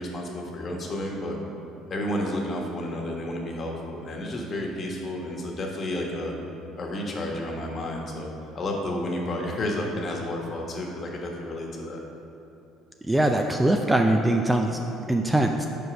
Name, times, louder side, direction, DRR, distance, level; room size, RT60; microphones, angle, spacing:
voice 1, 0.0-1.4 1.9-6.3 6.8-12.0, left 1 dB, 40° left, 0 dB, 1.3 m, -31 dB
voice 2, 13.1-14.8 15.1-15.7, right 1 dB, 10° right, 3 dB, 0.4 m, -22 dB
5.1 x 4.7 x 5.9 m, 2.8 s
supercardioid pair, 90°, 0 cm